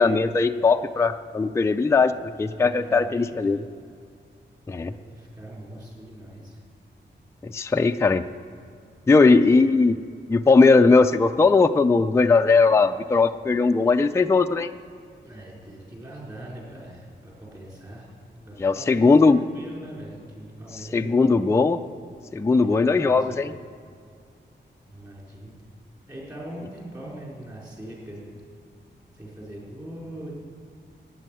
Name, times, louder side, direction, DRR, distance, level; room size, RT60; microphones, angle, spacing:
voice 1, 0.0-2.1 2.4-3.6 4.7-4.9 7.4-8.2 9.1-10.0 10.3-14.7 18.6-19.4 20.9-21.8 22.3-23.5, left 4 dB, 15° left, 7 dB, 0.4 m, -19 dB
voice 2, 2.2-3.3 4.8-6.6 15.1-21.6 22.6-23.5 24.9-25.6 26.1-28.4 29.1-30.3, right 1 dB, 20° right, -5 dB, 4.6 m, -41 dB
14.0 x 9.2 x 9.1 m, 2.3 s
wide cardioid pair, 170°, 19 cm